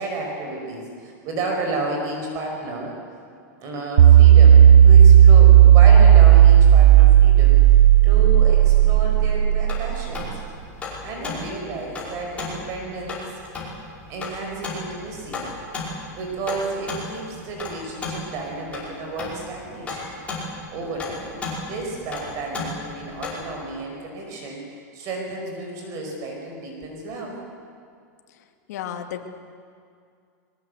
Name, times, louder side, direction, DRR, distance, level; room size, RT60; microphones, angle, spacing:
voice 1, 0.0-2.9 3.6-10.4 11.0-13.2 14.1-15.5 16.0-20.1 20.7-27.4, right 2 dB, 35° right, 1 dB, 5.2 m, -32 dB
sound 1, 4.0-10.2, right 10 dB, 65° right, 0.7 m, -11 dB
sound 2, 9.6-23.6, left 3 dB, 15° left, 5.5 m, -34 dB
voice 2, 28.7-29.3, left 9 dB, 65° left, 5 dB, 2.2 m, -32 dB
22.5 x 19.5 x 8.2 m, 2.3 s
supercardioid pair, 155°, 9 cm